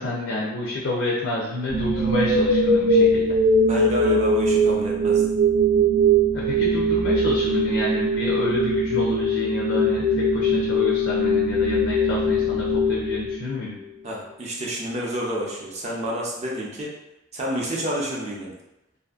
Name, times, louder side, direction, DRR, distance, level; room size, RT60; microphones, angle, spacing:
voice 1, 0.0-3.4 6.3-13.8, left 2 dB, 80° left, -4 dB, 0.4 m, -29 dB
sound 1, 1.7-13.7, right 1 dB, 75° right, 0.7 m, -21 dB
voice 2, 3.6-5.3 14.0-16.9 17.3-18.5, equal, 35° right, -3 dB, 0.5 m, -29 dB
2.5 x 2.5 x 2.4 m, 0.90 s
head